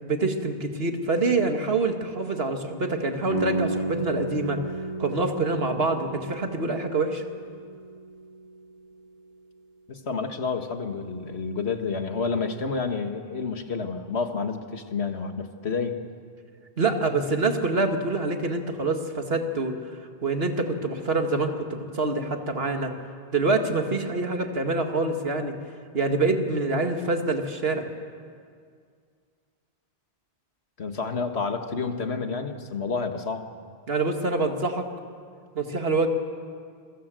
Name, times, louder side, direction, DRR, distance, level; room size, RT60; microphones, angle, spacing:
voice 1, 0.0-4.6 5.0-7.2 16.8-19.7 20.2-22.9 23.3-25.5 25.9-27.8 33.9-34.8 35.6-36.1, right 3 dB, 65° right, 5 dB, 2.2 m, -26 dB
sound 1, 3.3-9.1, right 3 dB, 35° right, 1.1 m, -33 dB
voice 2, 9.9-16.0 30.8-33.4, left 4 dB, 80° left, 6 dB, 1.9 m, -29 dB
27.5 x 23.0 x 7.7 m, 2.1 s
omnidirectional pair, 1.1 m